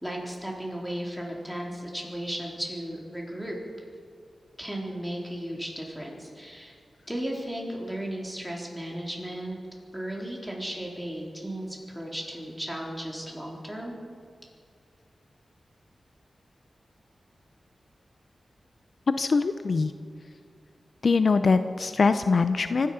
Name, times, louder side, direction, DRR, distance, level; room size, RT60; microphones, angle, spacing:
voice 1, 0.0-3.6 4.6-6.7 7.1-9.6 9.9-14.0, right 1 dB, ahead, -2 dB, 3.9 m, -35 dB
voice 2, 19.1-19.9 21.0-22.9, left 4 dB, 65° left, 11 dB, 0.6 m, -23 dB
24.5 x 10.5 x 5.7 m, 2.2 s
cardioid pair, 70°, 0 cm